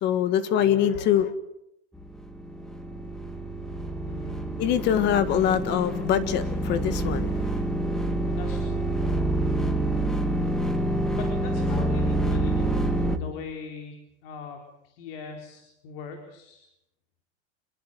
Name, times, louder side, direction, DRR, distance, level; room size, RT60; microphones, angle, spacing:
voice 1, 0.0-1.3 4.6-7.6, left 10 dB, 30° left, 13 dB, 1.8 m, -24 dB
sound 1, 2.0-13.2, right 1 dB, ahead, 1.6 m, -27 dB
voice 2, 4.1-4.4 8.3-8.8 11.1-16.6, left 5 dB, 55° left, 4 dB, 4.4 m, -41 dB
27.5 x 21.5 x 9.3 m, 0.81 s
supercardioid pair, 175°, 34 cm